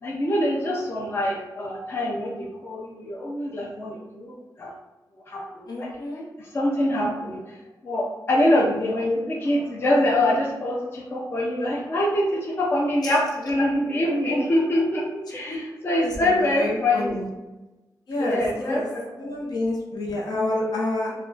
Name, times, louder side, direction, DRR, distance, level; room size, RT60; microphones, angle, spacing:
voice 1, 0.0-4.3 4.6-4.7 5.3-5.9 6.5-7.4 7.8-17.2 18.2-19.3, left 1 dB, 35° left, -3 dB, 0.5 m, -24 dB
voice 2, 5.7-6.3 13.0-13.2 15.3-15.6 16.0-17.3 18.1-18.9 19.1-21.1, left 1 dB, 70° left, -2 dB, 0.7 m, -29 dB
3.5 x 2.1 x 2.4 m, 1.1 s
wide cardioid pair, 155°, 7 cm